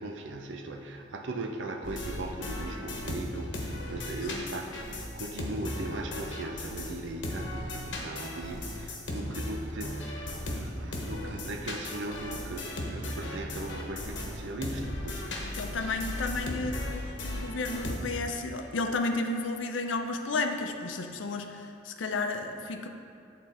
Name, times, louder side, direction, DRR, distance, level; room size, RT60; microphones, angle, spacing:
voice 1, 0.0-15.8, right 2 dB, 75° right, 4 dB, 0.6 m, -39 dB
sound 1, 1.8-7.0 7.2-18.4, left 1 dB, 70° left, 1.0 m, -36 dB
voice 2, 15.2-22.9, left 3 dB, 90° left, 5 dB, 0.6 m, -33 dB
9.3 x 3.7 x 4.2 m, 2.5 s
head